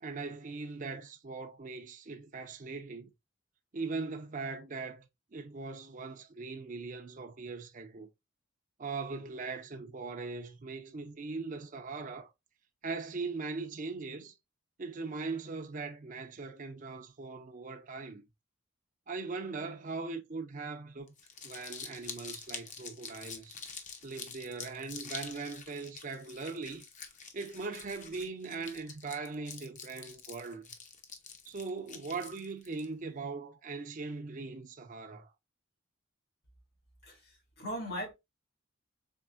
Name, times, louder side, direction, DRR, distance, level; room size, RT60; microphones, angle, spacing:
voice 1, 0.0-3.1 3.7-5.0 5.3-8.1 8.8-12.3 12.8-14.3 14.8-18.2 19.1-21.1 21.4-23.6 24.0-26.9 27.3-30.6 31.5-35.3, right 4 dB, 40° right, 0.5 m, -40 dB
Crumpling crinkling, 21.1-32.9, left 6 dB, 35° left, 0.7 m, -46 dB
voice 2, 37.0-38.1, equal, 65° left, 2.2 m, -39 dB
4.4 x 3.5 x 2.4 m
head